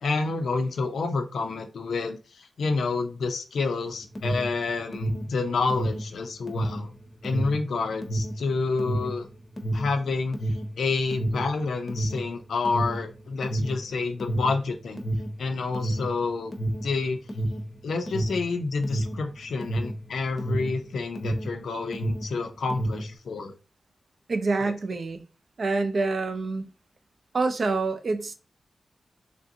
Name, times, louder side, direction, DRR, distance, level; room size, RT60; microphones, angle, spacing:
voice 1, 0.0-6.9 7.2-9.3 9.7-15.0 15.4-16.5 16.8-17.2 17.8-23.5 24.6-24.7, left 4 dB, 85° left, 0.5 m, -29 dB
Alarm, 3.8-21.6 21.9-23.1, right 1 dB, 35° left, 0.6 m, -30 dB
voice 2, 24.3-25.2 25.6-26.6 27.3-28.3, right 3 dB, 55° right, 0.4 m, -26 dB
3.3 x 2.5 x 2.7 m
wide cardioid pair, 95°, 0 cm